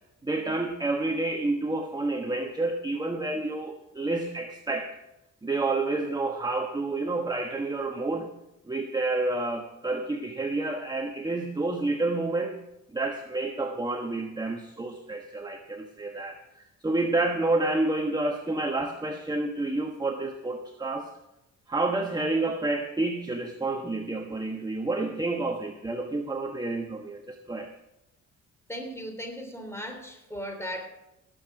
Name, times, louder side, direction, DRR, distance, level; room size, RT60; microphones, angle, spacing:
voice 1, 0.2-4.9 5.4-8.3 8.7-12.6 12.9-21.1 21.7-27.7, right 2 dB, 15° right, 3 dB, 1.2 m, -29 dB
voice 2, 28.7-30.9, equal, 10° left, 4 dB, 3.5 m, -37 dB
18.0 x 7.7 x 5.0 m, 0.91 s
cardioid pair, 90°, 30 cm